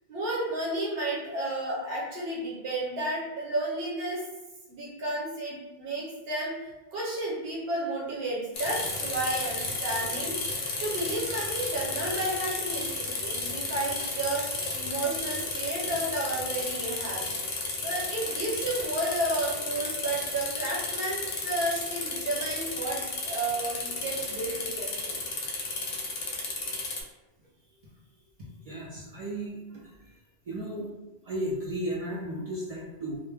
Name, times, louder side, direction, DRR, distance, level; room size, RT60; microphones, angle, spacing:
voice 1, 0.1-4.2 4.7-14.4 14.7-17.3 17.8-25.2, right 1 dB, 70° right, -4 dB, 1.0 m, -32 dB
sound 1, 8.5-27.0, left 3 dB, 60° left, 0.6 m, -33 dB
voice 2, 28.4-29.9 30.5-30.9 31.2-33.2, right 1 dB, 50° right, -5 dB, 0.4 m, -34 dB
2.1 x 2.0 x 3.2 m, 1.1 s
omnidirectional pair, 1.0 m